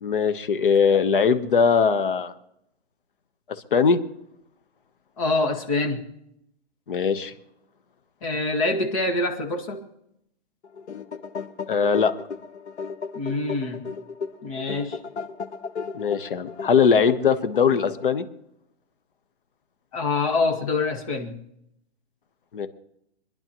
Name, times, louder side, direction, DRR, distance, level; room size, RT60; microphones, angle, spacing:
voice 1, 0.0-2.3 3.7-4.0 6.9-7.3 11.7-12.1 15.9-18.3 22.5-22.7, left 6 dB, 50° left, 11 dB, 1.1 m, -20 dB
voice 2, 5.2-6.0 8.2-9.8 13.1-13.8 14.4-15.0 19.9-21.4, left 3 dB, 30° left, 2 dB, 1.9 m, -25 dB
sound 1, 10.6-18.3, left 5 dB, 75° left, 1.3 m, -35 dB
26.5 x 10.5 x 3.0 m, 0.77 s
hypercardioid pair, 175°, 34 cm